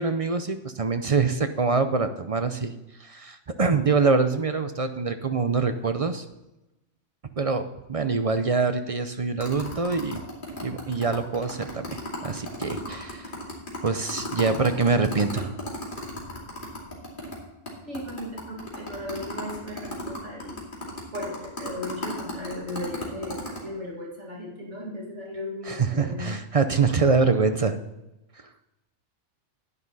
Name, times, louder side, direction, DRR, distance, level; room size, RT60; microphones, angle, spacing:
voice 1, 0.0-2.7 3.0-6.2 7.4-10.2 10.6-13.3 13.8-15.5 25.6-27.8, right 4 dB, 40° right, 9 dB, 0.5 m, -25 dB
sound 1, 9.4-17.4 17.7-17.8 17.9-23.6, left 1 dB, 40° left, 2.9 m, -35 dB
voice 2, 17.8-20.6 21.1-26.3, left 1 dB, 70° right, -2 dB, 2.6 m, -36 dB
11.0 x 9.7 x 4.0 m, 0.97 s
omnidirectional pair, 1.3 m